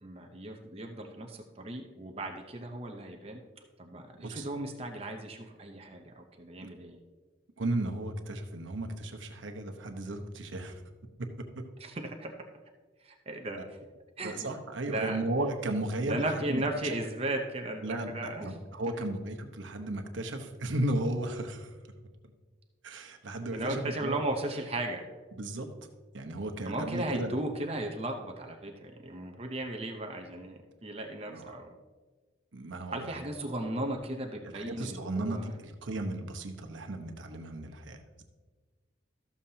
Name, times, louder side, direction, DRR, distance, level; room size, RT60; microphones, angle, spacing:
voice 1, 0.0-3.4 3.8-7.0 11.8-12.3 13.0-13.8 14.2-14.6 14.9-15.2 16.0-18.6 18.9-19.0 19.8-19.9 23.5-25.0 26.6-31.7 32.9-35.5, right 1 dB, 30° right, 3 dB, 0.7 m, -36 dB
voice 2, 4.1-4.5 6.6-6.7 7.6-10.8 11.2-11.3 13.6-13.7 14.2-16.6 17.8-21.8 22.8-24.2 25.4-25.7 26.1-27.4 31.3-31.6 32.5-33.1 34.6-38.2, right 1 dB, 75° right, 5 dB, 1.0 m, -35 dB
13.0 x 7.2 x 2.8 m, 1.3 s
head